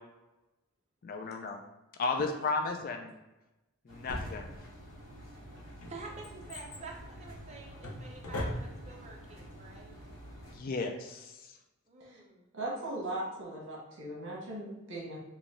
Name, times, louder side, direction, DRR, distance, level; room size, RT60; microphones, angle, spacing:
voice 1, 1.0-1.6 2.0-3.2 3.9-4.5 10.5-11.4, left 4 dB, 40° left, 3 dB, 0.3 m, -34 dB
voice 2, 2.2-2.5 5.9-9.9 11.9-12.5, right 3 dB, 30° right, -1 dB, 0.6 m, -48 dB
Engine, 3.9-10.6, equal, 60° left, 1.0 m, -50 dB
Drawer open or close, 4.1-4.9 5.6-9.1 9.3-9.4, left 1 dB, 80° left, 0.7 m, -40 dB
voice 3, 12.5-15.2, right 1 dB, 55° right, -4 dB, 1.1 m, -38 dB
3.8 x 2.3 x 3.6 m, 0.99 s
head